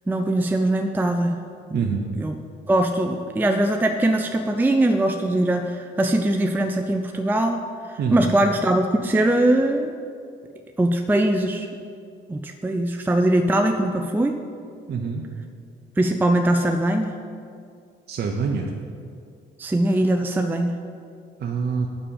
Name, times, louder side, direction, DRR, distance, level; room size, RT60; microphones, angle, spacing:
voice 1, 0.1-1.4 1.7-1.9 2.2-2.3 2.7-7.6 7.9-9.9 10.8-11.7 12.3-14.4 16.0-17.1 19.6-20.7, right 1 dB, 10° right, 5 dB, 0.4 m, -21 dB
voice 2, 1.7-2.1 8.0-8.3 14.9-15.2 18.1-18.7 21.4-21.9, right 5 dB, 55° right, 1 dB, 0.7 m, -25 dB
7.4 x 5.1 x 7.0 m, 2.3 s
cardioid pair, 90°, 20 cm